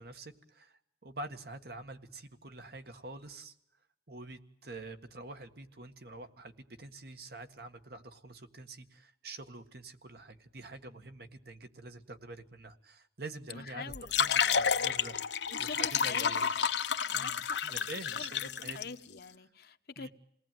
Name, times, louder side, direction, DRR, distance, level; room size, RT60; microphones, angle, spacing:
voice 1, 0.0-3.5 4.1-15.2 15.6-16.4 17.1-18.8 20.0-20.1, right 2 dB, 60° right, 1.8 m, -46 dB
voice 2, 13.5-15.0 15.5-16.5 17.1-20.1, left 5 dB, 60° left, 1.1 m, -45 dB
sound 1, 13.9-18.8, left 7 dB, 80° left, 1.0 m, -30 dB
28.0 x 19.0 x 9.3 m
head